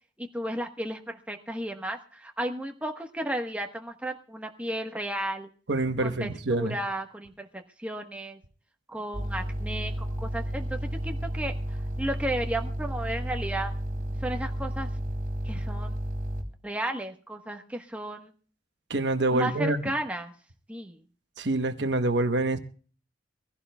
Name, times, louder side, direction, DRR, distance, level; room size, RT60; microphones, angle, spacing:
voice 1, 0.2-5.5 6.0-8.4 8.9-10.8 11.0-11.5 12.0-13.7 14.2-14.9 15.4-16.0 16.6-18.3 19.3-20.3 20.7-21.0, right 1 dB, 5° right, 3 dB, 1.2 m, -33 dB
voice 2, 5.7-6.8 18.9-19.8 21.4-22.6, right 2 dB, 65° right, 8 dB, 1.1 m, -26 dB
sound 1, 9.1-16.4, equal, 50° right, 2.9 m, -32 dB
24.0 x 15.5 x 2.3 m, 0.42 s
head